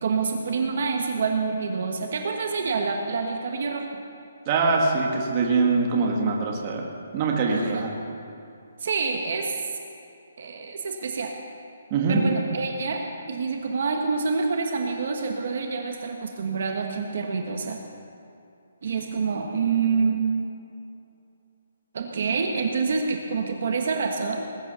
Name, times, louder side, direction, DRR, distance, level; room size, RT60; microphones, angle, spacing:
voice 1, 0.0-4.0 7.5-7.8 8.8-9.6 10.4-11.3 12.1-17.8 18.8-20.5 21.9-24.4, right 5 dB, 40° right, 3 dB, 1.2 m, -27 dB
voice 2, 4.5-6.9 7.1-7.9 11.9-12.2, right 4 dB, 20° right, 0 dB, 1.5 m, -23 dB
20.0 x 9.5 x 6.9 m, 2.7 s
hypercardioid pair, 180°, 0 cm